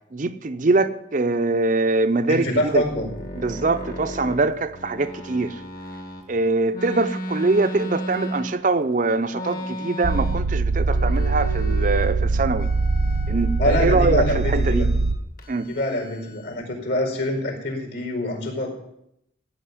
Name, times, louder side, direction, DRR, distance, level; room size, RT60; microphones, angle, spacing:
voice 1, 0.1-2.8 3.3-5.6 6.3-12.7 13.3-14.9 15.5-15.7, right 3 dB, 45° right, 0.6 m, -23 dB
voice 2, 2.3-3.1 13.6-14.9 15.6-18.7, left 1 dB, 70° left, 4.7 m, -25 dB
sound 1, 2.7-6.2 6.7-8.8 9.3-10.6 10.8-12.2 12.5-13.7 14.2-15.1 15.4-16.6, equal, 50° left, 1.8 m, -35 dB
sound 2, 10.0-15.2, right 3 dB, 80° right, 0.8 m, -22 dB
16.0 x 5.8 x 9.6 m
head